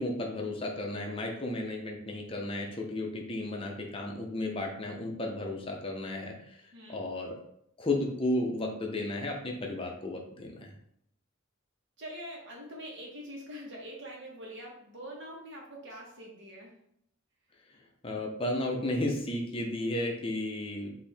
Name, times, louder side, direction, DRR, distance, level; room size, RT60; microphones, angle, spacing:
voice 1, 0.0-7.3 7.8-10.7 18.0-21.0, left 1 dB, 25° left, 1 dB, 0.7 m, -33 dB
voice 2, 12.0-16.7, equal, 60° right, -2 dB, 1.2 m, -44 dB
4.4 x 2.7 x 3.5 m, 0.73 s
head